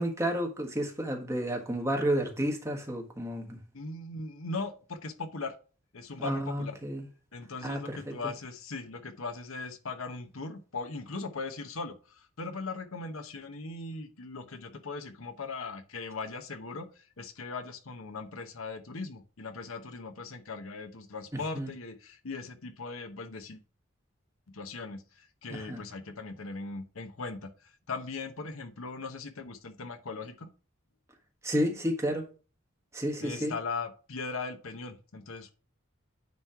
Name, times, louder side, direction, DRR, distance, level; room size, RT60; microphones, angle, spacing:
voice 1, 0.0-3.6 6.2-7.0 7.6-8.1 21.5-21.7 25.5-25.8 31.4-32.2 32.9-33.5, equal, 15° right, 1.5 m, -31 dB
voice 2, 3.7-5.5 5.9-6.8 7.3-23.6 24.5-30.5 33.2-35.5, left 3 dB, 85° left, 1.0 m, -39 dB
9.4 x 3.2 x 5.7 m
head